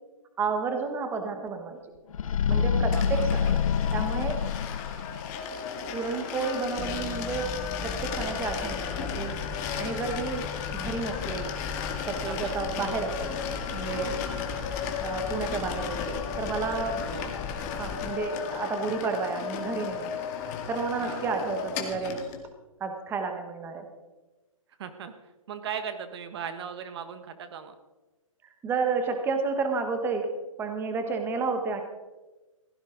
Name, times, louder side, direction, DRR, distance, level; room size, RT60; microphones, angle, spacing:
voice 1, 0.4-1.8 2.5-3.6 3.9-4.4 5.9-7.5 7.8-11.5 12.1-13.4 13.7-14.3 15.0-17.0 17.7-20.2 20.7-22.2 22.8-23.8 28.6-30.3 30.6-31.8, right 4 dB, 10° right, 6 dB, 1.3 m, -31 dB
sound 1, 2.1-5.4, left 7 dB, 80° left, 0.6 m, -26 dB
voice 2, 2.5-3.3 9.7-9.9 12.2-12.6 17.1-17.3 21.0-21.2 24.8-27.7, right 7 dB, 50° right, 10 dB, 1.3 m, -38 dB
sound 2, 2.9-22.4, left 7 dB, 30° left, 2.0 m, -35 dB
sound 3, 6.7-18.2, left 6 dB, 15° left, 0.6 m, -38 dB
16.5 x 14.5 x 3.9 m, 1.2 s
hypercardioid pair, 150°, 18 cm